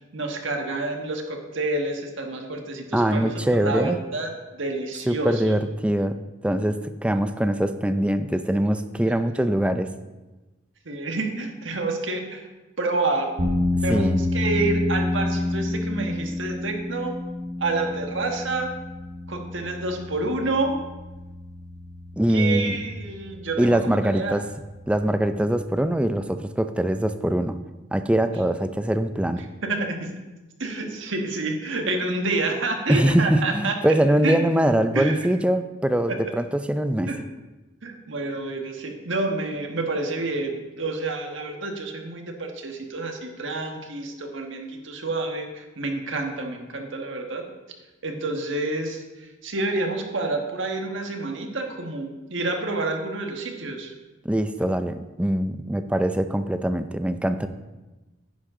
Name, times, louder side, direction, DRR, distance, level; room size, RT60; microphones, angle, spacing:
voice 1, 0.1-5.5 10.8-12.5 12.8-13.3 13.8-17.2 17.6-18.7 19.3-20.8 22.3-24.4 29.6-30.1 30.6-33.8 34.2-34.6 34.9-35.2 36.1-36.2 37.1-37.2 37.8-47.4 48.0-53.9, right 2 dB, 65° right, 3 dB, 1.5 m, -28 dB
voice 2, 2.9-4.0 5.1-6.2 6.4-9.9 13.9-14.2 22.2-22.8 23.6-24.4 24.9-27.6 27.9-29.4 32.9-37.1 54.2-57.5, right 1 dB, 5° right, 9 dB, 0.4 m, -23 dB
sound 1, 13.4-25.9, left 2 dB, 40° right, 1.7 m, -30 dB
10.0 x 10.0 x 3.7 m, 1.1 s
head